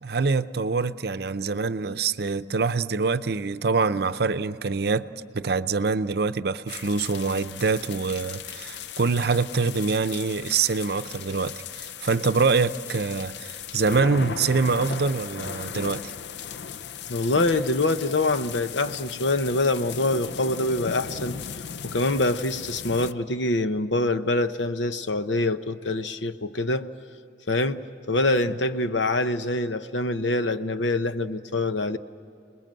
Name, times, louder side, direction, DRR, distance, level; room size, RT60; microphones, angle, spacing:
voice 1, 0.0-5.1 5.3-16.1, right 4 dB, 60° right, 0.6 m, -25 dB
sound 1, 6.7-23.1, left 7 dB, 70° left, 0.5 m, -37 dB
voice 2, 17.1-21.4 21.8-26.9 27.5-32.0, left 2 dB, 90° left, 1.0 m, -25 dB
29.5 x 20.5 x 7.7 m
head